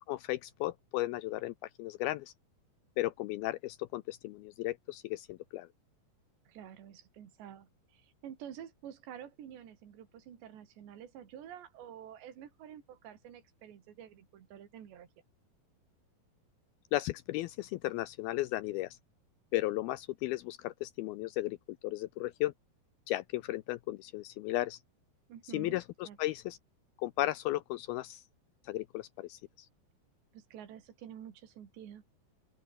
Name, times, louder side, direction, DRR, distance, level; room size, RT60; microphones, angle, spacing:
voice 1, 0.1-2.3 3.0-5.7 16.9-19.0 19.5-22.5 23.1-24.8 25.4-26.6 27.0-28.2 28.6-29.7, left 17 dB, 80° left, 2.2 m, -35 dB
voice 2, 6.5-15.1 25.3-25.8 26.0-26.2 30.3-32.1, right 9 dB, 80° right, 5.0 m, -49 dB
open air
omnidirectional pair, 5.0 m